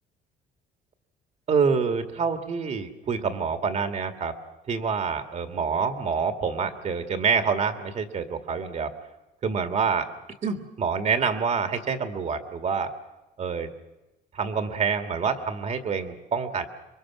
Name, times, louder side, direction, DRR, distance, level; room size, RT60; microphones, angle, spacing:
voice 1, 1.5-4.3 4.7-8.9 9.4-10.1 10.4-12.9 13.4-13.7 14.3-16.7, right 5 dB, 45° right, 7 dB, 2.1 m, -26 dB
26.5 x 23.0 x 6.2 m, 0.99 s
cardioid pair, 110°, 17 cm